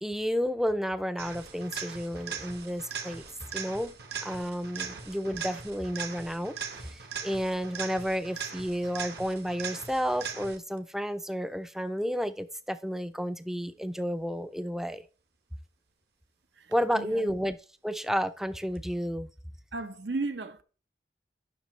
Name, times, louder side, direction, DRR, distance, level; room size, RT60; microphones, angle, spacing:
voice 1, 0.0-3.2 3.5-3.9 4.2-15.0 16.7-17.6 17.8-19.3, equal, ahead, 0.4 m, -31 dB
sound 1, 1.2-10.8 18.8-18.9, right 6 dB, 60° right, 1.3 m, -40 dB
voice 2, 16.6-17.3 19.7-20.6, right 3 dB, 75° right, 0.8 m, -35 dB
10.5 x 5.9 x 3.2 m
head